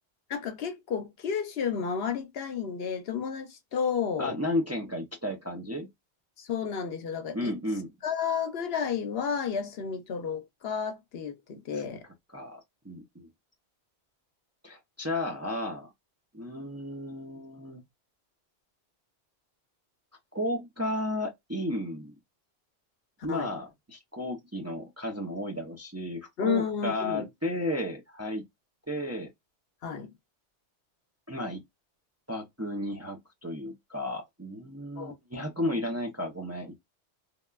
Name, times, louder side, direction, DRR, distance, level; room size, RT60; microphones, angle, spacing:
voice 1, 0.3-4.4 6.4-7.6 8.0-12.0 23.3-23.5 26.4-27.3 29.8-30.1 35.0-35.2, left 7 dB, 65° left, 0.8 m, -32 dB
voice 2, 4.2-5.9 7.3-7.9 12.3-13.3 14.6-15.9 16.3-17.8 20.3-22.2 23.2-28.4 28.9-29.3 31.3-31.6 32.3-36.8, left 1 dB, 20° right, 0.5 m, -33 dB
3.5 x 2.2 x 2.2 m
omnidirectional pair, 1.1 m